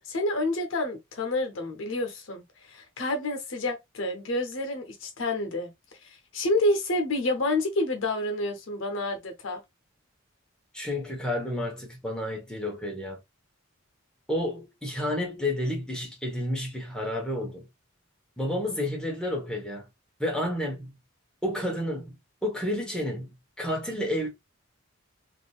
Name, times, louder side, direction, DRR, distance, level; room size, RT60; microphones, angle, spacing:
voice 1, 0.1-5.7 6.3-9.6, left 1 dB, 65° left, 0.8 m, -28 dB
voice 2, 10.7-13.2 14.3-17.6 18.4-19.8 20.2-21.0 21.4-24.3, left 1 dB, 5° left, 1.0 m, -30 dB
3.6 x 2.6 x 2.3 m
head